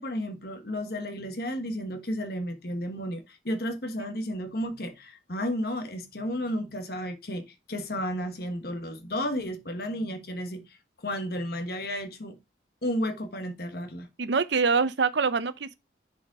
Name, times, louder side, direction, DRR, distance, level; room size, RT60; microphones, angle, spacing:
voice 1, 0.0-10.6 11.0-12.4 12.8-14.1, equal, 55° left, 1.4 m, -32 dB
voice 2, 14.2-15.8, right 5 dB, 70° right, 0.7 m, -25 dB
6.7 x 5.1 x 3.6 m
head